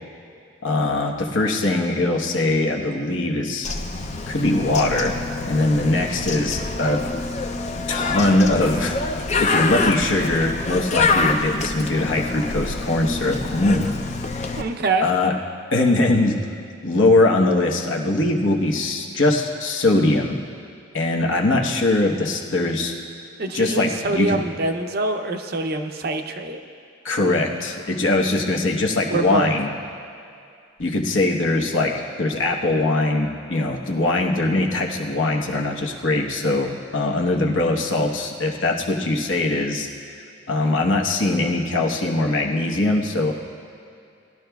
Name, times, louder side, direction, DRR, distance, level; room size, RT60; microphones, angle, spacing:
voice 1, 0.6-3.7 4.3-5.2 5.5-7.0 7.9-9.0 9.4-13.9 14.3-14.6 15.0-15.3 15.7-16.4 16.8-20.4 20.9-22.9 23.5-24.4 27.0-29.7 30.8-39.9 40.5-43.3, left 2 dB, 65° left, 1 dB, 1.0 m, -21 dB
Bird, 3.6-14.6, left 3 dB, 30° left, 0.5 m, -26 dB
voice 2, 14.6-15.1 23.4-26.6 29.1-29.6, right 2 dB, 45° right, 5 dB, 0.6 m, -25 dB
19.0 x 12.0 x 2.3 m, 2.5 s
head